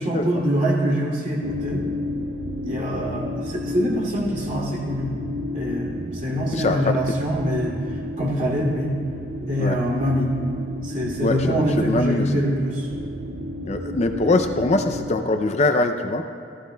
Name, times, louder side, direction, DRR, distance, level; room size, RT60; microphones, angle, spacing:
voice 1, 0.0-1.8 2.6-5.1 5.5-8.9 9.4-10.4 10.8-12.9, equal, 40° right, -4 dB, 2.5 m, -24 dB
sound 1, 1.4-15.1, left 1 dB, 60° right, 0.5 m, -32 dB
voice 2, 6.5-6.9 9.6-9.8 11.2-12.3 13.6-16.2, left 2 dB, 40° left, 6 dB, 0.4 m, -22 dB
15.0 x 14.0 x 2.2 m, 2.6 s
head